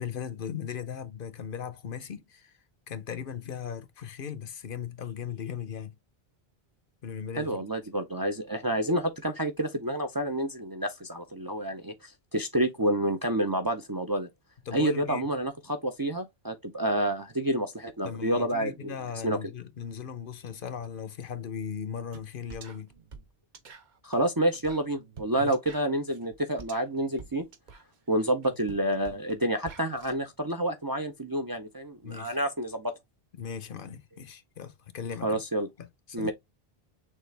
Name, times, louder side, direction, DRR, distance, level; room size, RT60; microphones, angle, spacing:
voice 1, 0.0-2.5 2.9-6.0 7.0-7.6 14.7-15.2 18.0-22.9 25.4-25.5 32.0-32.4 33.4-35.4 35.8-35.9 36.2-36.3, left 7 dB, 60° left, 0.8 m, -38 dB
voice 2, 7.4-14.3 14.7-18.9 19.2-19.4 24.0-27.4 28.1-32.9 35.2-35.7 36.1-36.3, right 1 dB, 30° right, 0.5 m, -29 dB
sound 1, 22.1-22.2 22.5-30.1, right 5 dB, 50° right, 0.9 m, -48 dB
6.4 x 2.5 x 3.2 m
omnidirectional pair, 1.0 m